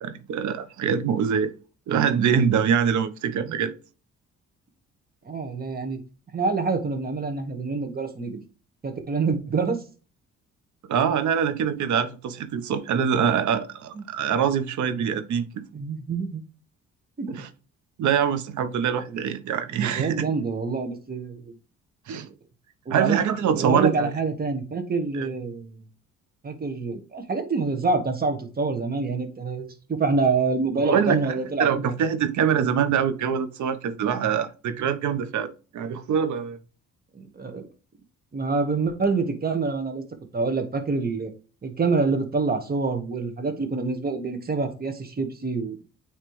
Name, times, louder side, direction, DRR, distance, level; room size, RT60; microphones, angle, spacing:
voice 1, 0.0-1.5 1.9-3.7 10.9-15.5 17.3-17.5 18.0-20.2 22.1-22.3 22.9-24.1 25.1-25.3 30.8-36.6, right 7 dB, 70° right, 1.0 m, -24 dB
voice 2, 5.2-6.0 6.3-8.4 8.8-9.8 15.7-16.4 17.2-17.4 19.7-21.5 22.8-23.2 23.5-25.8 26.4-31.8 37.1-37.6 38.3-40.0 40.3-41.3 41.6-45.8, right 4 dB, 30° right, 1.5 m, -26 dB
9.1 x 3.3 x 3.2 m
cardioid pair, 90°, 30 cm